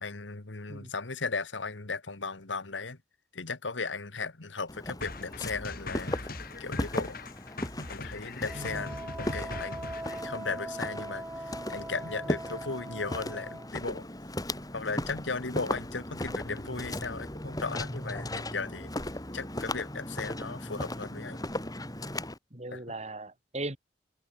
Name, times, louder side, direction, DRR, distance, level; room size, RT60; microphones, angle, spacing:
voice 1, 0.0-3.0 3.3-6.2 6.6-7.2 7.9-9.9 10.2-14.1 14.7-18.9 19.3-21.4 22.7-22.8, left 4 dB, 90° left, 1.8 m, -36 dB
Walk footsteps, 4.7-22.4, left 1 dB, 20° left, 4.2 m, -37 dB
sound 1, 5.0-10.2, left 2 dB, 50° left, 5.1 m, -40 dB
Wind instrument woodwind instrument, 8.5-13.7, right 1 dB, 10° right, 1.2 m, -41 dB
voice 2, 8.5-9.0 22.5-23.8, right 2 dB, 35° right, 3.6 m, -38 dB
head